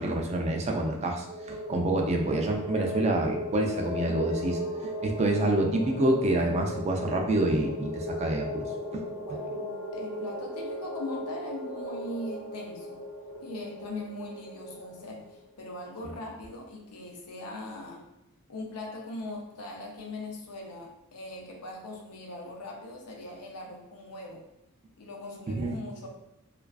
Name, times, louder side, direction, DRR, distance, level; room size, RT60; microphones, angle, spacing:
voice 1, 0.0-4.6 5.0-8.7 8.9-9.0 25.5-25.8, right 1 dB, 30° right, 2 dB, 0.3 m, -27 dB
sound 1, 1.1-15.4, left 1 dB, 75° right, 0.7 m, -37 dB
voice 2, 9.2-13.0 13.4-18.1 18.5-24.5 25.0-26.1, left 2 dB, 90° left, 0 dB, 0.6 m, -40 dB
2.4 x 2.3 x 2.3 m, 0.90 s
head